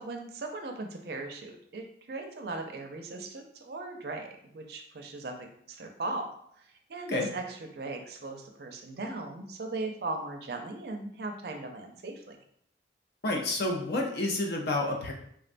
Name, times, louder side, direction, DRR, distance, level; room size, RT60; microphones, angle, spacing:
voice 1, 0.0-4.3 4.5-6.3 6.9-12.4, right 2 dB, 55° right, 3 dB, 0.4 m, -38 dB
voice 2, 13.2-15.1, left 2 dB, 60° left, 1 dB, 0.5 m, -29 dB
3.4 x 2.1 x 2.5 m, 0.68 s
head